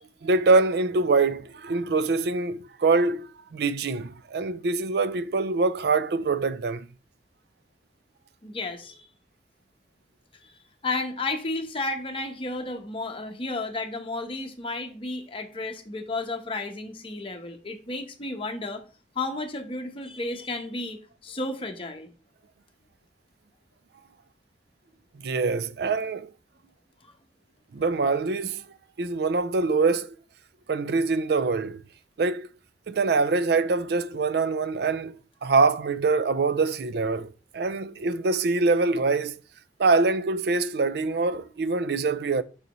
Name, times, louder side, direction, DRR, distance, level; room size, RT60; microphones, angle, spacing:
voice 1, 0.2-6.9 25.2-26.3 27.7-28.7 29.0-30.2 30.7-31.8 32.2-32.5 32.9-39.4 39.8-42.4, right 3 dB, 65° right, 0.4 m, -24 dB
voice 2, 8.4-9.1 10.4-10.5 10.8-18.8 19.1-22.1 27.0-27.1, left 2 dB, 30° left, 0.9 m, -32 dB
6.6 x 5.7 x 3.0 m
head